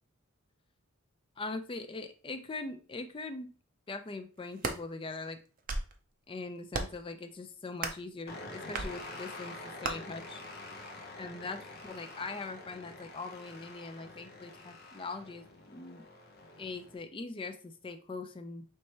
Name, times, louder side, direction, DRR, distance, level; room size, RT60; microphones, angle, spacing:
voice 1, 1.4-3.5 3.9-5.4 6.3-10.4 11.2-16.0 16.6-18.6, left 3 dB, 25° left, 8 dB, 0.3 m, -41 dB
sound 1, 4.4-4.8 5.4-6.0 6.7-7.1 7.8-8.1 8.7-8.9 9.8-9.9, right 3 dB, 40° right, 0.5 m, -35 dB
sound 2, 8.3-16.9, left 2 dB, 45° left, 0.7 m, -47 dB
4.1 x 3.3 x 3.1 m, 0.38 s
head